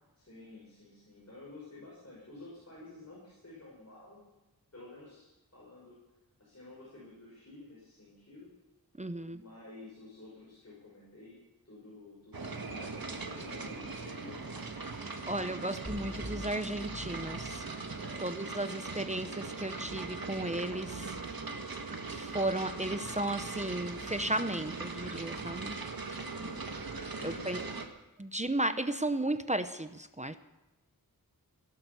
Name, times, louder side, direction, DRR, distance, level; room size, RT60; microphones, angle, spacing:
voice 1, 0.2-4.2 4.7-6.0 6.4-8.5 9.3-11.3 11.6-14.7 17.9-18.2 26.1-26.6 26.9-27.8, left 2 dB, 45° left, -5 dB, 5.9 m, -51 dB
voice 2, 9.0-9.4 15.3-17.7 18.2-21.2 22.1-25.8 27.2-27.6 28.2-30.4, right 1 dB, 20° right, 10 dB, 0.8 m, -34 dB
sound 1, 12.3-27.9, right 3 dB, 70° right, 1.7 m, -40 dB
sound 2, 15.9-18.0, left 1 dB, 5° right, 6.1 m, -45 dB
17.5 x 11.5 x 6.9 m, 1.0 s
wide cardioid pair, 65°, 36 cm